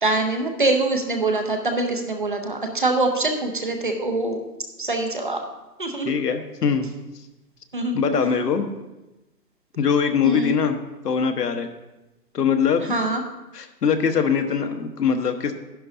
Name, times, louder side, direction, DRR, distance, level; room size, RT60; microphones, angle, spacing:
voice 1, 0.0-4.4 4.8-5.4 5.8-6.1 7.7-8.3 10.2-10.5 12.9-13.2, right 2 dB, 30° right, 4 dB, 0.7 m, -24 dB
voice 2, 6.0-6.9 7.9-8.6 9.8-11.7 12.3-12.9 13.5-15.5, left 6 dB, 70° left, 7 dB, 1.2 m, -22 dB
11.5 x 11.0 x 2.7 m, 1.0 s
hypercardioid pair, 170°, 49 cm